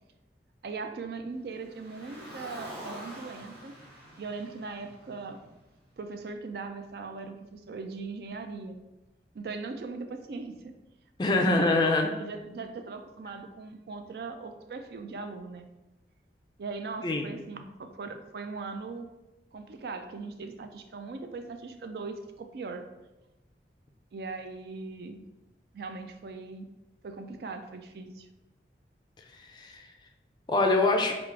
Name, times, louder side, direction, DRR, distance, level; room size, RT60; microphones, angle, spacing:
voice 1, 0.6-3.7 4.2-5.4 6.0-8.8 9.3-10.6 11.3-11.9 12.2-15.7 16.6-19.1 19.5-22.9 24.1-25.2 25.7-26.6 27.0-28.3, right 4 dB, 60° right, 6 dB, 0.4 m, -39 dB
Car, 1.5-5.9, right 1 dB, 80° right, 1.3 m, -46 dB
voice 2, 11.2-12.1 17.0-17.3 29.5-29.9 30.5-31.2, left 2 dB, 25° left, 3 dB, 0.3 m, -24 dB
3.6 x 2.4 x 4.5 m, 1.0 s
head